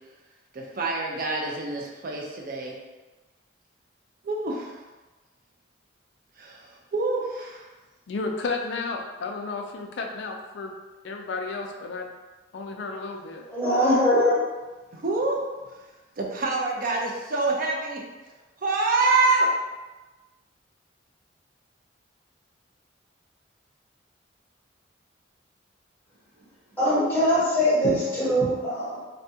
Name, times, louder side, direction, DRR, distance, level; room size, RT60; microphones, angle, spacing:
voice 1, 0.5-2.7 4.2-4.7 6.4-7.7 14.9-15.4 16.2-18.0 18.6-19.5, right 3 dB, 45° right, -1 dB, 0.4 m, -26 dB
voice 2, 8.1-10.8 11.0-12.1 12.5-13.4, left 3 dB, 60° left, 2 dB, 0.3 m, -32 dB
voice 3, 13.5-14.4 26.8-29.0, equal, 10° left, -10 dB, 0.9 m, -22 dB
2.6 x 2.2 x 2.7 m, 1.2 s
head